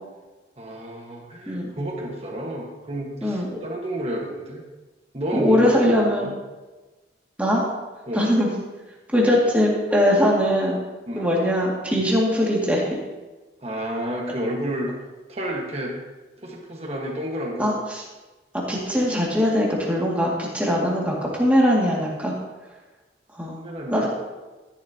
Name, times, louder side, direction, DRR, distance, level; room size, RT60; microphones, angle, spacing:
voice 1, 0.6-4.6 5.1-6.3 8.1-8.3 11.1-11.3 13.6-14.9 15.3-16.0 16.4-17.8 23.6-24.1, equal, 35° right, 0 dB, 1.5 m, -30 dB
voice 2, 3.2-3.6 5.3-6.3 7.4-7.6 8.1-8.5 9.1-10.8 11.2-12.8 17.6-18.0 18.7-22.3 23.3-23.6 23.9-24.1, equal, 10° right, -4 dB, 2.2 m, -21 dB
13.0 x 11.0 x 2.9 m, 1.2 s
head